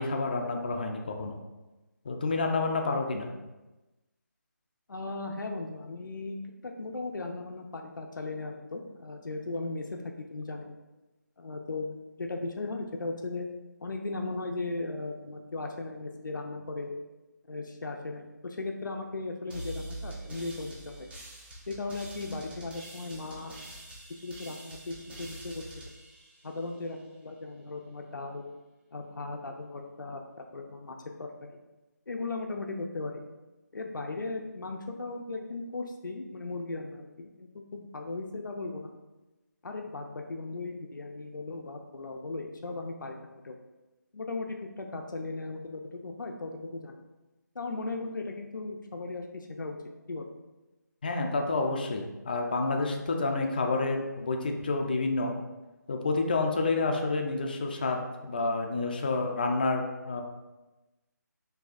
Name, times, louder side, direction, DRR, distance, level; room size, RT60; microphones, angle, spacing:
voice 1, 0.0-1.4 2.0-3.3 51.0-55.3 55.9-60.2, left 3 dB, 30° left, 3 dB, 0.4 m, -29 dB
voice 2, 4.9-6.4 6.6-10.7 11.4-13.5 13.8-16.9 17.5-21.1 21.7-23.6 24.2-25.8 26.4-28.5 28.9-31.6 32.1-33.2 33.7-38.9 39.6-43.6 44.1-47.0 47.6-49.8 50.1-50.3, left 3 dB, 85° left, 2 dB, 0.5 m, -37 dB
sound 1, 19.5-27.0, right 1 dB, 35° right, 0.9 m, -45 dB
6.2 x 2.6 x 2.4 m, 1.1 s
figure-of-eight pair, 165°, 10 cm